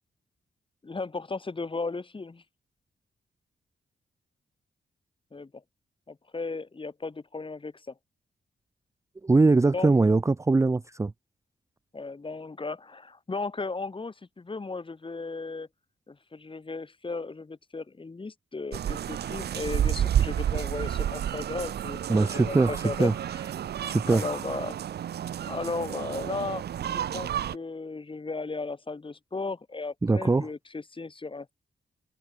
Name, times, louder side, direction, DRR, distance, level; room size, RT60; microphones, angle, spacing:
voice 1, 0.8-2.4 5.3-5.5 6.1-7.9 9.7-9.9 11.9-15.7 16.1-23.1 24.1-24.8 25.5-31.5, left 3 dB, 30° left, 4.0 m, -35 dB
voice 2, 9.2-11.1 22.1-23.1 23.9-24.2 30.0-30.5, right 3 dB, 20° right, 0.5 m, -22 dB
sound 1, 18.7-27.6, right 10 dB, 75° right, 0.8 m, -30 dB
open air
cardioid pair, 85°, 17 cm